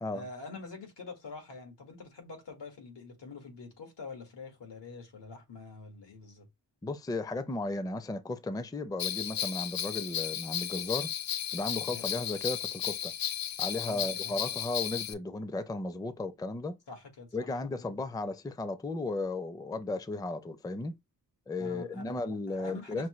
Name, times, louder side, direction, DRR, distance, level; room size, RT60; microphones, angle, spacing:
voice 1, 0.1-6.5 11.8-12.1 13.8-14.3 16.9-17.5 17.8-17.9 21.6-22.1 22.5-23.1, left 4 dB, 85° left, 1.8 m, -46 dB
voice 2, 6.8-11.1 11.5-13.1 13.6-16.7 17.3-20.9 21.5-23.1, left 2 dB, 10° left, 0.4 m, -35 dB
Bell, 9.0-15.1, left 10 dB, 60° left, 0.6 m, -34 dB
5.9 x 2.2 x 3.1 m
cardioid pair, 80°, 41 cm